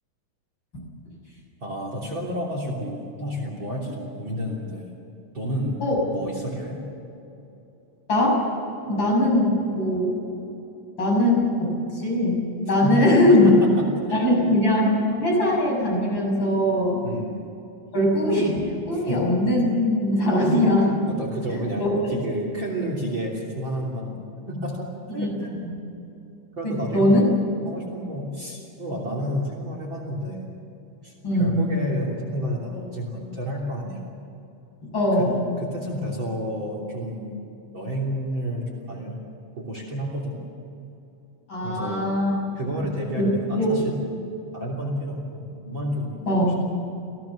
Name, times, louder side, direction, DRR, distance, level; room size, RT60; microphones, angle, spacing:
voice 1, 1.6-4.9 5.3-6.8 12.8-14.4 14.8-15.0 17.0-17.4 18.9-19.3 21.1-24.2 24.5-25.5 26.6-27.3 27.7-30.5 31.0-34.1 35.1-35.3 35.6-37.3 37.7-39.2 39.6-40.4 41.6-42.1 42.5-44.0 44.5-46.6, equal, 35° right, 0 dB, 3.7 m, -30 dB
voice 2, 8.1-8.4 8.8-10.2 11.0-13.5 14.1-17.0 17.9-21.0 21.5-22.1 25.2-25.3 25.6-25.7 26.6-27.2 31.2-31.6 34.9-35.4 41.5-42.3 43.2-43.3 43.6-43.7 46.3-46.5, left 1 dB, 35° left, -2 dB, 7.4 m, -21 dB
28.5 x 17.0 x 7.3 m, 2.8 s
omnidirectional pair, 3.7 m